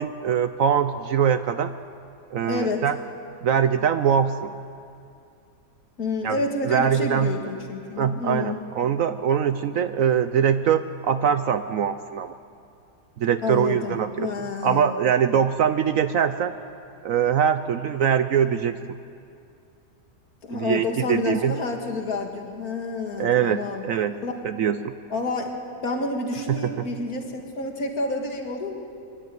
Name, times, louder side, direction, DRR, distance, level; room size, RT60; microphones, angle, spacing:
voice 1, 0.0-1.7 2.3-3.0 3.4-4.5 6.2-6.4 6.6-7.3 8.0-12.3 13.2-14.3 14.6-16.5 17.0-18.8 20.5-21.6 23.2-24.2 24.4-24.9 26.5-26.8, right 8 dB, 65° right, 11 dB, 0.9 m, -23 dB
voice 2, 2.4-2.9 6.0-8.6 13.4-14.9 20.4-23.8 24.2-24.3 25.1-25.5 25.8-28.7, left 3 dB, 60° left, 3 dB, 2.3 m, -29 dB
23.5 x 12.5 x 9.2 m, 2.5 s
omnidirectional pair, 1.8 m